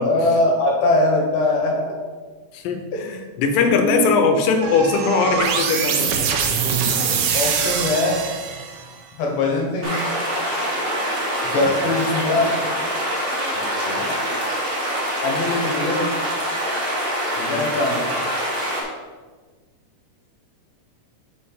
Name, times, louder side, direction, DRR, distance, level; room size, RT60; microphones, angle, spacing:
voice 1, 0.0-1.9 2.9-3.0 3.7-4.1 7.3-8.2 9.2-10.0 11.4-12.5 15.2-16.1 17.5-18.3, left 2 dB, 60° left, 0 dB, 2.2 m, -21 dB
voice 2, 2.5-6.5 11.5-11.7 13.6-14.1 17.4-17.7, left 4 dB, 90° left, 6 dB, 2.5 m, -21 dB
sound 1, 4.6-8.9, right 6 dB, 85° right, 2.4 m, -23 dB
sound 2, 9.8-18.8, equal, 30° right, 1.0 m, -25 dB
6.0 x 4.4 x 5.6 m, 1.4 s
omnidirectional pair, 3.8 m